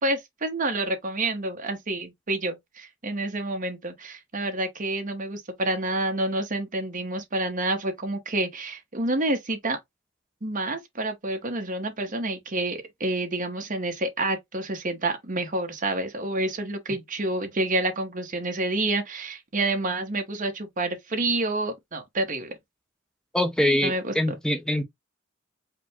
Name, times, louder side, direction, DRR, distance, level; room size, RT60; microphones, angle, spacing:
voice 1, 0.0-9.8 10.4-22.6 23.8-24.1, right 2 dB, 40° right, 1.1 m, -28 dB
voice 2, 23.3-24.8, left 1 dB, 5° left, 0.6 m, -24 dB
4.9 x 2.2 x 3.5 m
head